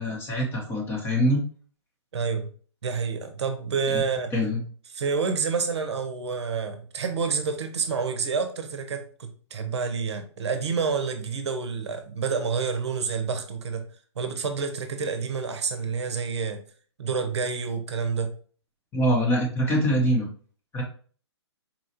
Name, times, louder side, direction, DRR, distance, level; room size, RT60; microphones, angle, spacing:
voice 1, 0.0-1.4 3.9-4.0 4.3-4.6 18.9-20.3 20.7-20.8, equal, 15° left, 0 dB, 0.8 m, -24 dB
voice 2, 2.1-2.5 2.8-4.3 4.9-13.8 14.2-16.6 17.0-18.3, right 5 dB, 70° right, 6 dB, 0.7 m, -28 dB
4.1 x 2.4 x 2.8 m, 0.42 s
hypercardioid pair, 135°, 15 cm